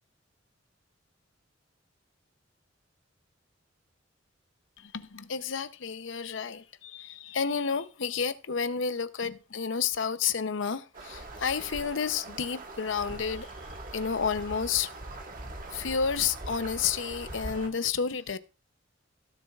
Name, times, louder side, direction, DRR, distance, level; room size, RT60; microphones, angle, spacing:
voice 1, 4.8-13.5 13.9-14.9 15.7-18.4, left 6 dB, 70° left, 0.7 m, -31 dB
sound 1, 10.9-17.7, right 2 dB, 45° right, 1.6 m, -42 dB
17.0 x 7.1 x 2.4 m
head